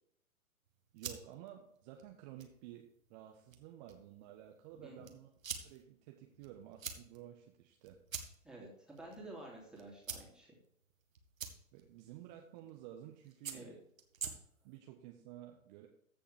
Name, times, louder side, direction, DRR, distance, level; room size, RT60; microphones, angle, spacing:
sound 1, 0.7-14.8, right 6 dB, 70° right, 1.9 m, -50 dB
voice 1, 0.9-5.3 5.6-8.0 11.7-13.8 14.6-15.9, right 12 dB, 30° right, 3 dB, 1.2 m, -53 dB
voice 2, 8.4-10.5 13.5-13.7, right 2 dB, ahead, -4 dB, 3.0 m, -51 dB
14.5 x 7.0 x 3.4 m, 0.73 s
figure-of-eight pair, 120°, 42 cm